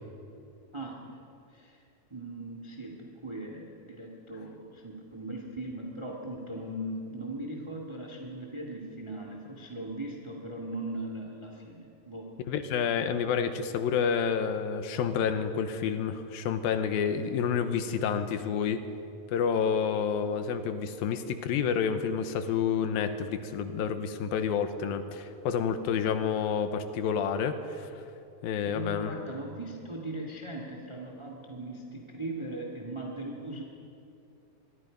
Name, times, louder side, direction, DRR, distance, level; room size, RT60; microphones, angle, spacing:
voice 1, 0.7-1.2 1.5-1.8 2.1-12.3 28.6-33.6, right 1 dB, 10° right, 0 dB, 1.4 m, -39 dB
voice 2, 12.5-18.8 19.3-28.0 28.4-29.2, left 7 dB, 85° left, 9 dB, 2.9 m, -29 dB
25.0 x 23.0 x 5.3 m, 2.7 s
omnidirectional pair, 4.1 m